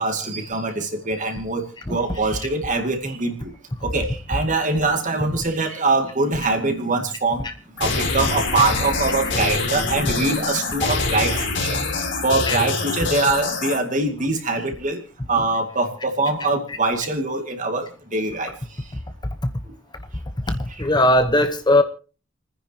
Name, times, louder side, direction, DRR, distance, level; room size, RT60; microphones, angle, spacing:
voice 1, 0.0-1.6 1.9-3.5 3.8-7.5 7.8-11.8 12.2-15.0 15.3-18.5, right 3 dB, 40° right, 2.3 m, -23 dB
sound 1, 7.8-13.8, left 3 dB, 65° left, 3.6 m, -25 dB
voice 2, 20.5-21.8, left 1 dB, 20° left, 1.0 m, -18 dB
29.5 x 10.0 x 2.9 m
head